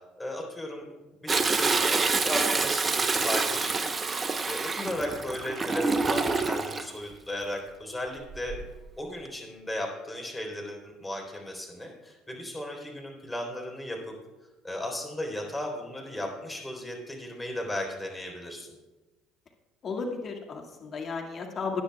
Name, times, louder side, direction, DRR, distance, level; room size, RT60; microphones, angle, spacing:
voice 1, 0.2-0.8 1.2-3.9 4.5-8.6 9.0-14.1 14.6-18.7, left 1 dB, 10° left, 1 dB, 3.7 m, -35 dB
Toilet flush, 1.3-6.8 8.3-8.8 9.2-9.3, right 4 dB, 30° right, 0.9 m, -27 dB
voice 2, 19.8-21.8, left 4 dB, 45° left, 1 dB, 2.0 m, -34 dB
19.0 x 9.9 x 2.3 m, 1.2 s
hypercardioid pair, 70°, 0 cm